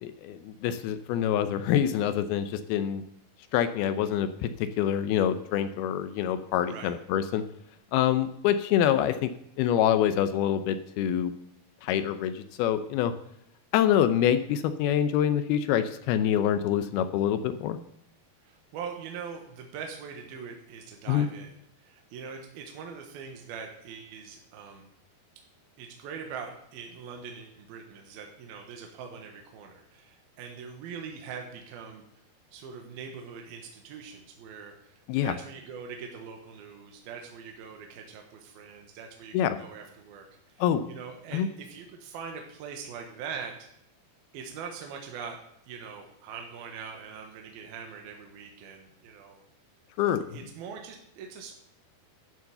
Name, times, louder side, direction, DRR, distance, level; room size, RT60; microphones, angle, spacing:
voice 1, 0.0-3.0 3.5-4.5 4.8-7.4 7.9-9.3 9.6-11.3 11.8-13.1 13.7-17.8 21.1-21.3 35.1-35.3 39.3-39.6 40.6-40.9 41.3-41.5 50.0-50.2, left 10 dB, 80° left, 11 dB, 2.5 m, -26 dB
voice 2, 18.4-21.5 21.8-24.9 25.8-32.0 32.5-34.9 35.2-40.3 40.6-43.7 44.3-45.4 45.7-49.4 50.3-51.5, right 6 dB, 70° right, 3 dB, 3.1 m, -42 dB
12.0 x 7.6 x 6.7 m, 0.74 s
omnidirectional pair, 4.6 m